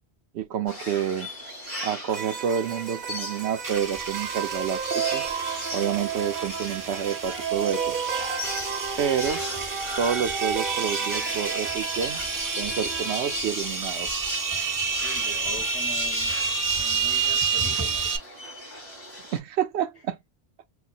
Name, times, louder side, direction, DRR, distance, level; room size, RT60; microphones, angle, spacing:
voice 1, 0.3-1.3 1.8-5.3 5.7-8.0 9.0-9.4 10.0-12.3 12.6-14.2 19.3-20.2, right 8 dB, 85° right, 0.9 m, -29 dB
sound 1, 0.7-19.4, left 1 dB, 40° left, 2.2 m, -37 dB
sound 2, 2.1-13.4, right 7 dB, 55° right, 0.8 m, -33 dB
sound 3, 3.6-18.2, right 5 dB, 25° right, 0.4 m, -30 dB
voice 2, 15.0-16.4 16.8-18.1, left 2 dB, 70° left, 2.1 m, -42 dB
4.1 x 2.2 x 2.4 m
omnidirectional pair, 1.1 m